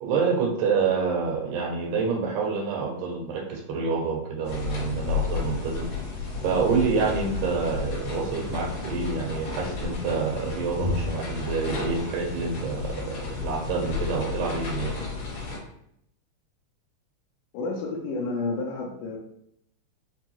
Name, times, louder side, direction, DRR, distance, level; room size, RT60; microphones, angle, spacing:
voice 1, 0.0-5.9 6.4-14.9, right 5 dB, 80° right, 1 dB, 2.0 m, -27 dB
sound 1, 4.4-15.6, left 4 dB, 60° left, 2.0 m, -32 dB
voice 2, 17.5-19.2, left 3 dB, 80° left, -1 dB, 1.8 m, -30 dB
5.3 x 2.2 x 2.9 m, 0.73 s
omnidirectional pair, 3.9 m